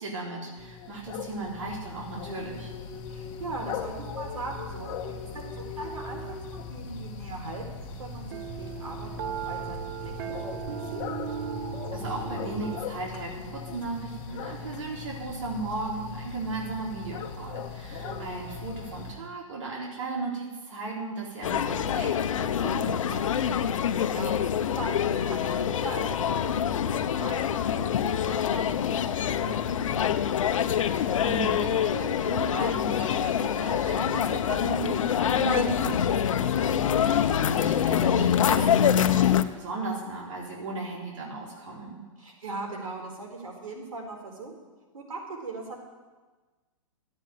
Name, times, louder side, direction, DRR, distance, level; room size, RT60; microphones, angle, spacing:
voice 1, 0.0-2.7 11.9-23.4 30.9-42.0, right 3 dB, 65° right, -3 dB, 4.0 m, -36 dB
sound 1, 0.6-19.1, left 5 dB, 30° left, 1.5 m, -39 dB
voice 2, 3.1-4.9 5.3-7.6 8.0-10.6 10.9-11.0 18.0-18.3 23.7-28.6 28.9-30.0 36.9-37.4 42.2-44.5 44.9-45.9, right 3 dB, 85° right, 1 dB, 4.3 m, -40 dB
sound 2, 7.8-12.8, right 9 dB, 45° right, 0.9 m, -37 dB
sound 3, 21.4-39.4, left 9 dB, 70° left, 0.9 m, -25 dB
14.0 x 9.0 x 9.4 m, 1.3 s
hypercardioid pair, 150°, 17 cm